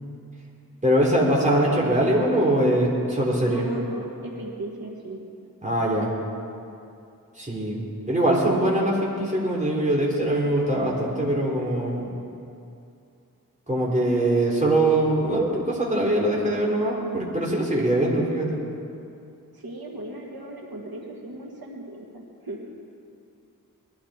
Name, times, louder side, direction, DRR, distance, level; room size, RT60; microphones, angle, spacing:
voice 1, 0.8-3.6 5.6-6.1 7.4-12.1 13.7-18.6, right 1 dB, 20° right, -4 dB, 3.6 m, -22 dB
voice 2, 3.4-5.2 19.5-22.6, right 1 dB, 85° right, -1 dB, 1.8 m, -36 dB
21.0 x 13.0 x 4.4 m, 2.5 s
wide cardioid pair, 70°, 35 cm